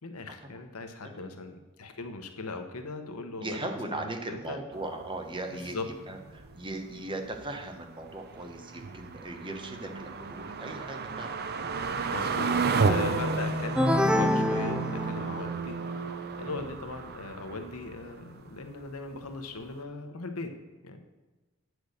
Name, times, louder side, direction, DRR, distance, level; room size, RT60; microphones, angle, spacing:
voice 1, 0.0-4.6 5.5-5.9 12.1-12.6 12.9-16.0 16.4-20.6 20.8-21.0, left 3 dB, 80° left, 6 dB, 1.0 m, -39 dB
voice 2, 3.4-11.4, right 2 dB, 20° right, 5 dB, 0.9 m, -38 dB
sound 1, 4.7-18.9 19.2-19.3 19.7-19.8, right 4 dB, 45° right, 0.6 m, -33 dB
sound 2, 13.8-15.6, left 1 dB, 5° right, 0.3 m, -26 dB
8.4 x 6.3 x 6.5 m, 1.2 s
head